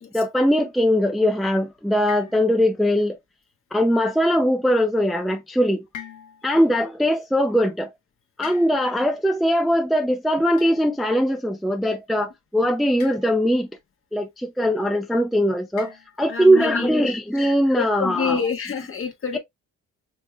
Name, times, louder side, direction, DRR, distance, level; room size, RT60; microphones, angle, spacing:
voice 1, 0.1-3.2 3.7-5.8 6.4-7.9 8.4-13.7 14.1-18.4 19.3-19.4, equal, ahead, 0.5 m, -21 dB
sound 1, 2.1-3.0 5.9-6.7 8.4-9.2 10.6-11.1 13.0-13.6 15.8-16.5, left 9 dB, 90° left, 1.1 m, -43 dB
voice 2, 16.3-16.9 17.3-17.5 17.8-19.4, left 6 dB, 45° left, 1.3 m, -28 dB
5.3 x 3.1 x 2.2 m
cardioid pair, 90°, 30 cm